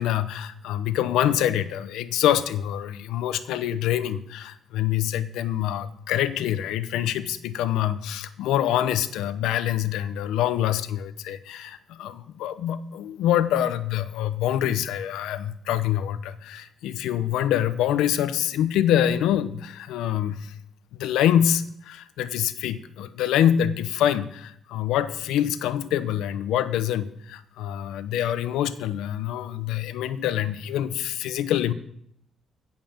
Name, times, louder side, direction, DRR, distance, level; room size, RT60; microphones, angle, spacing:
voice 1, 0.0-20.5 20.9-31.7, left 11 dB, 90° left, 13 dB, 0.8 m, -25 dB
16.5 x 5.8 x 7.2 m, 0.71 s
cardioid pair, 90°, 0 cm